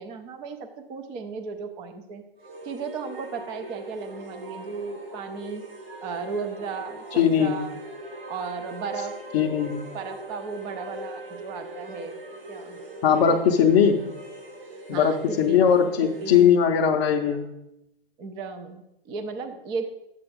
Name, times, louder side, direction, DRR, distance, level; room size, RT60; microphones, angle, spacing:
voice 1, 0.0-2.2 2.6-5.6 6.0-7.7 8.3-9.1 9.9-12.2 12.5-12.8 13.1-13.4 14.9-15.7 16.0-16.6 17.3-17.5 18.2-19.9, right 5 dB, 15° right, 7 dB, 0.5 m, -35 dB
sound 1, 2.4-16.6, right 1 dB, 70° right, 2.9 m, -41 dB
voice 2, 7.1-7.6 9.3-9.8 13.0-14.1 14.9-17.5, left 7 dB, 30° left, -2 dB, 0.6 m, -20 dB
10.5 x 8.0 x 3.6 m, 0.87 s
hypercardioid pair, 140°, 30 cm